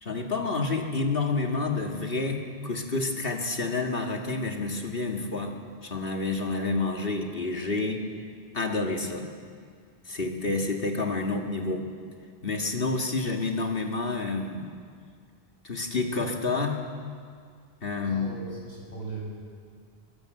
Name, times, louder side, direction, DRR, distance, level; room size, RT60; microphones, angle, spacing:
voice 1, 0.0-5.5 5.8-8.0 8.5-9.3 10.1-11.8 12.4-14.7 15.6-16.8 17.8-18.3, left 3 dB, 60° left, 2 dB, 2.2 m, -29 dB
voice 2, 18.0-19.2, right 3 dB, 90° left, -2 dB, 7.0 m, -39 dB
22.5 x 20.5 x 7.9 m, 2.1 s
omnidirectional pair, 1.1 m